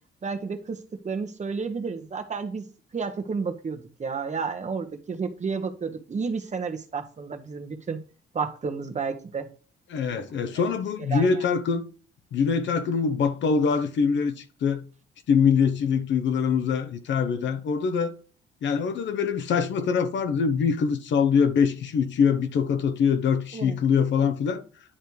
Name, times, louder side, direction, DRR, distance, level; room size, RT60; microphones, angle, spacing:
voice 1, 0.2-0.8 1.0-2.6 2.9-8.0 8.3-9.5 10.1-10.2 11.0-11.4 23.5-23.8, right 5 dB, 35° right, 1.2 m, -31 dB
voice 2, 9.9-11.8 12.3-14.8 15.3-18.1 18.6-24.6, left 6 dB, 70° left, 1.0 m, -24 dB
10.0 x 3.4 x 4.6 m
cardioid pair, 90°, 20 cm